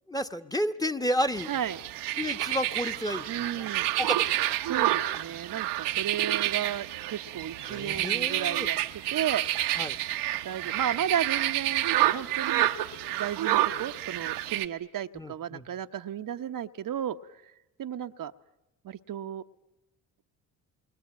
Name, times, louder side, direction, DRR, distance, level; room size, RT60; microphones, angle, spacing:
voice 1, 0.1-1.5 2.2-3.7 4.0-4.2 7.7-8.7 9.8-9.9 15.1-15.6, equal, 10° left, 11 dB, 1.4 m, -31 dB
sound 1, 1.4-14.7, right 14 dB, 80° right, 1.2 m, -29 dB
voice 2, 1.5-1.8 3.3-3.9 4.7-8.8 9.1-9.4 10.4-12.7 13.1-17.2 17.8-18.3 18.8-19.4, right 10 dB, 55° right, 7 dB, 1.0 m, -33 dB
28.0 x 22.5 x 8.7 m, 0.96 s
supercardioid pair, 55°, 40 cm